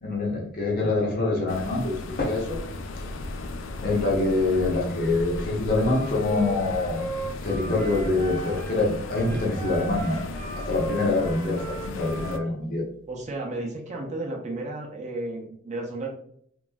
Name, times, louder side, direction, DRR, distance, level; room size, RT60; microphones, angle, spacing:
voice 1, 0.0-2.6 3.8-7.0 7.4-10.2 10.5-12.8, left 2 dB, 50° left, -2 dB, 0.8 m, -25 dB
sound 1, 1.5-12.4, left 2 dB, 75° left, 0.3 m, -36 dB
Wind instrument woodwind instrument, 5.7-8.8 9.1-12.5, right 2 dB, 15° left, 0.5 m, -37 dB
voice 2, 13.1-16.1, right 2 dB, 35° right, 0 dB, 0.5 m, -33 dB
3.0 x 2.5 x 2.3 m, 0.67 s
head